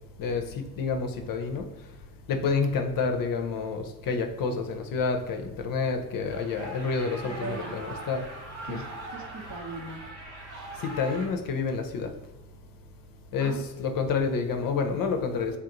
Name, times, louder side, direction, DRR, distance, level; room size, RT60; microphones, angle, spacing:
voice 1, 0.2-1.9 2.3-8.3 8.7-8.8 10.8-12.2 13.3-15.6, left 4 dB, 55° left, 5 dB, 0.6 m, -29 dB
sound 1, 6.3-11.3, right 1 dB, 80° right, 1.4 m, -41 dB
voice 2, 7.2-7.8 8.6-10.0 13.4-13.7, right 4 dB, 45° right, 3 dB, 0.8 m, -39 dB
3.3 x 2.4 x 2.9 m, 1.0 s
hypercardioid pair, 45°, 41 cm